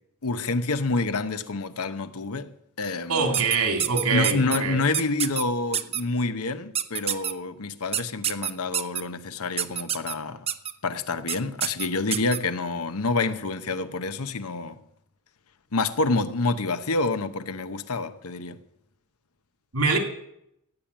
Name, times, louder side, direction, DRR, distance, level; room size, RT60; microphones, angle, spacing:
voice 1, 0.2-2.5 2.8-3.4 4.1-10.5 10.8-14.8 15.7-18.6, left 3 dB, 75° left, 0.9 m, -28 dB
voice 2, 3.1-4.8 19.7-20.0, right 4 dB, 80° right, 2.9 m, -24 dB
sound 1, 3.3-4.6 4.9-5.4 5.7-6.0 6.7-7.3 7.9-9.0 9.6-10.1 10.5-10.7 11.3-11.4 11.6-12.4, right 9 dB, 25° right, 0.6 m, -26 dB
15.5 x 8.9 x 8.6 m
head